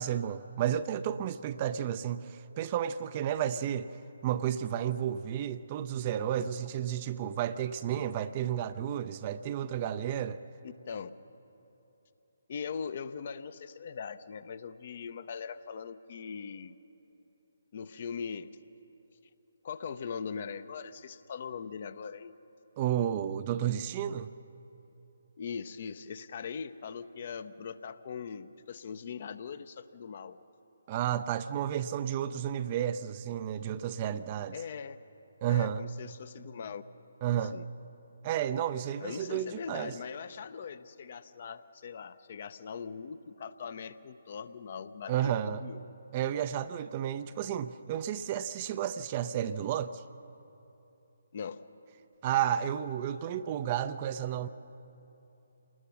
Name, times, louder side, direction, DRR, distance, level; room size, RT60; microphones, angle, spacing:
voice 1, 0.0-3.9 4.2-10.4 22.8-24.3 30.9-34.6 35.4-35.8 37.2-37.6 38.2-39.9 45.1-45.6 46.1-50.0 52.2-54.5, right 10 dB, 30° right, 12 dB, 0.5 m, -32 dB
voice 2, 10.6-11.1 12.5-16.8 17.7-18.5 19.6-22.4 25.4-30.4 34.5-35.0 35.5-36.8 37.5-37.6 39.0-45.9 51.3-51.6, left 6 dB, 40° left, 13 dB, 0.7 m, -41 dB
27.5 x 20.0 x 6.1 m, 3.0 s
figure-of-eight pair, 140°, 0 cm